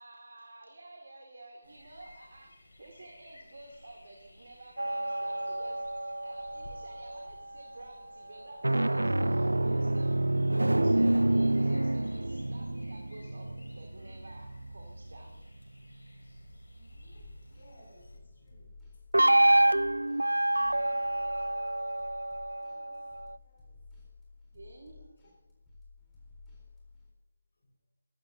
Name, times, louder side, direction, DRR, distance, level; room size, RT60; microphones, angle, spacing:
voice 1, 0.0-10.4 10.8-15.4 20.5-21.0 24.5-25.0, right 2 dB, 60° right, 1 dB, 2.3 m, -51 dB
sound 1, 1.6-18.2, left 1 dB, 75° left, 4.7 m, -57 dB
sound 2, 4.8-7.4 8.5-15.3 19.1-23.4, right 1 dB, 80° right, 0.3 m, -28 dB
voice 2, 16.7-18.7 19.7-21.3 22.5-23.1 23.4-23.8 25.0-25.1 27.6-27.7, equal, 50° left, -7 dB, 6.2 m, -62 dB
sound 3, 16.9-27.1, left 3 dB, 10° left, 3.9 m, -54 dB
24.5 x 13.5 x 2.8 m, 1.0 s
figure-of-eight pair, 155°, 0 cm